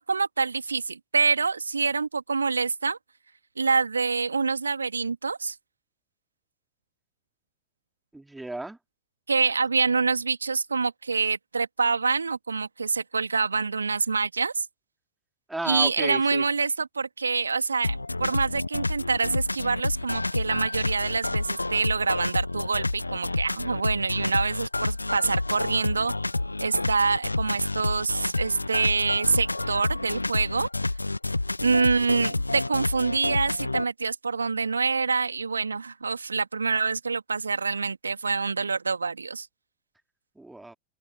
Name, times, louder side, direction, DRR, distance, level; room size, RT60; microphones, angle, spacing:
voice 1, 0.0-3.0 3.6-5.6 9.3-14.7 15.6-26.1 26.6-30.7 31.6-39.5, right 4 dB, 75° right, 2.5 m, -26 dB
voice 2, 8.1-8.8 15.5-16.4 40.4-40.7, right 2 dB, 5° right, 4.0 m, -34 dB
sound 1, 17.8-33.8, left 2 dB, 85° left, 1.0 m, -29 dB
figure-of-eight pair, 90°, 0 cm